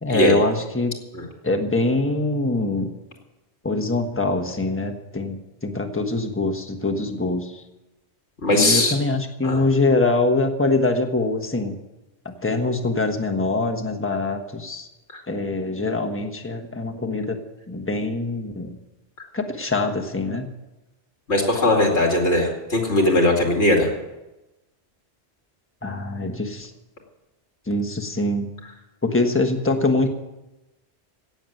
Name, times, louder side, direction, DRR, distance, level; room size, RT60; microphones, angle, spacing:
voice 1, 0.0-1.0 1.4-2.9 3.6-5.4 5.6-7.6 8.5-11.7 12.2-14.9 15.3-17.4 17.7-18.8 19.3-20.5 25.8-26.7 27.7-28.5 29.0-30.1, left 2 dB, 10° left, 5 dB, 1.3 m, -23 dB
voice 2, 8.4-8.9 9.4-9.6 15.1-15.2 21.3-23.9, left 1 dB, 90° left, 0 dB, 2.7 m, -19 dB
17.0 x 7.3 x 9.2 m, 1.0 s
omnidirectional pair, 1.1 m